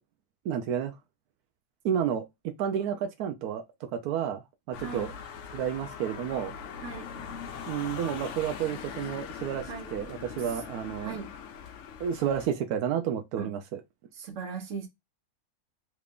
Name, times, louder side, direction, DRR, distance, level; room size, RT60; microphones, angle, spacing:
voice 1, 0.4-0.9 1.8-2.3 2.6-4.4 4.7-5.1 5.5-6.5 7.7-11.2 12.0-13.8, right 9 dB, 90° right, 1.1 m, -31 dB
sound 1, 4.7-12.5, left 6 dB, 65° left, 0.8 m, -41 dB
voice 2, 4.8-5.1 6.8-7.1 9.7-9.9 11.0-11.3 13.4-13.5 14.1-14.9, right 6 dB, 60° right, 1.3 m, -38 dB
3.2 x 2.5 x 3.4 m
omnidirectional pair, 1.6 m